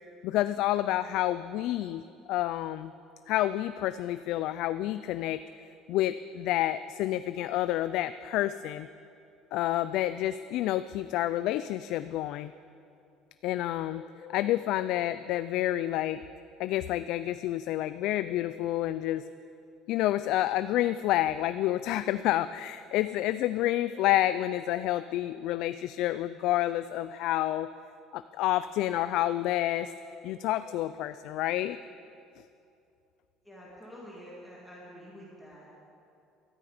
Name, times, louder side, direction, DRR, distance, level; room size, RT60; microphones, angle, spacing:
voice 1, 0.2-2.0 2.3-2.9 3.3-5.4 5.9-8.9 9.5-12.5 13.4-14.0 14.3-16.2 16.6-19.2 19.9-27.7 28.1-29.9 30.2-31.8, left 14 dB, 60° left, 13 dB, 0.3 m, -29 dB
sound 1, 13.9-15.3 17.9-19.3 23.5-24.9 29.5-30.9, left 7 dB, 35° left, 1.0 m, -50 dB
voice 2, 33.4-35.7, equal, ahead, -6 dB, 2.3 m, -48 dB
16.0 x 13.0 x 5.0 m, 2.6 s
cardioid pair, 155°, 0 cm